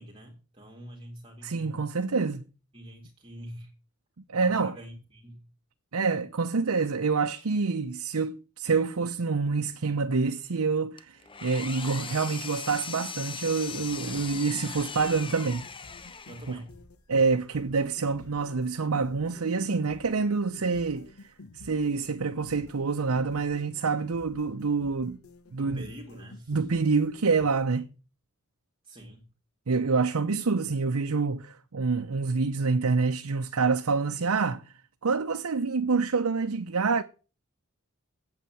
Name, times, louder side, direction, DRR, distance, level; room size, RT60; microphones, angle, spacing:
voice 1, 0.0-1.8 2.7-3.7 4.4-5.5 14.0-14.3 16.3-16.8 25.6-26.6 28.8-29.3, equal, 25° right, 2.2 m, -45 dB
voice 2, 1.4-2.4 4.3-4.7 5.9-15.7 16.5-16.6 17.1-21.1 21.6-25.2 25.5-25.8 26.5-27.9 29.7-34.7 35.0-37.0, right 4 dB, 90° right, 0.7 m, -27 dB
Engine, 11.0-16.7, left 6 dB, 25° left, 0.9 m, -39 dB
sound 1, 13.5-27.5, left 2 dB, 90° left, 1.3 m, -51 dB
8.5 x 8.1 x 7.3 m
head